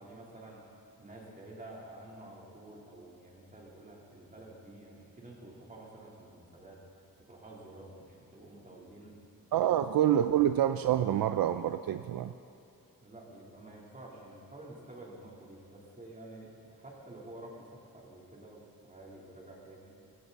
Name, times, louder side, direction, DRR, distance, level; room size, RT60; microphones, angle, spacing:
voice 1, 0.0-6.8 7.3-9.2 9.5-9.7 13.0-19.9, right 1 dB, 25° right, -4 dB, 3.5 m, -50 dB
voice 2, 9.5-12.3, right 11 dB, 70° right, 10 dB, 0.5 m, -27 dB
18.5 x 17.0 x 4.1 m, 2.7 s
wide cardioid pair, 135°, 36 cm